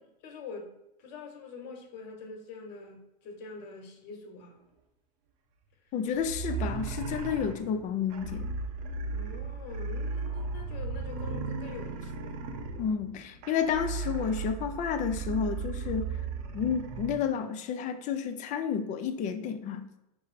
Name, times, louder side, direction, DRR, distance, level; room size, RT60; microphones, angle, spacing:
voice 1, 0.2-4.6 9.1-12.3, left 4 dB, 55° left, 1.0 m, -45 dB
voice 2, 5.9-8.5 12.8-16.2 16.5-19.8, left 7 dB, 35° left, 0.4 m, -31 dB
sound 1, 6.1-17.2, right 4 dB, 55° right, 0.6 m, -36 dB
5.2 x 2.0 x 4.2 m
supercardioid pair, 120°, 21 cm